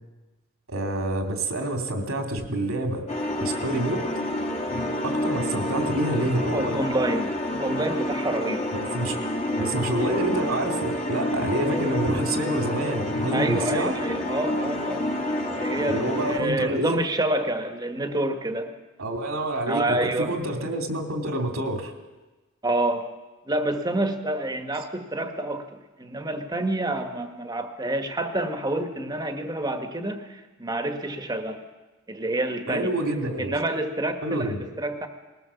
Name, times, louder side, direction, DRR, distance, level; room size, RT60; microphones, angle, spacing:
voice 1, 0.7-3.0 3.4-4.1 4.7-6.8 8.7-9.2 9.6-14.0 15.9-17.0 19.0-21.9 32.7-33.5 34.2-34.6, right 1 dB, 85° right, 4 dB, 2.9 m, -27 dB
sound 1, 3.1-16.4, left 1 dB, 35° left, 2.0 m, -28 dB
voice 2, 6.4-8.7 13.3-15.1 15.4-18.7 19.6-20.3 22.6-23.1 23.5-31.6 32.1-32.9 33.4-35.1, right 1 dB, 20° right, 7 dB, 1.5 m, -28 dB
21.0 x 18.0 x 7.1 m, 1.2 s
head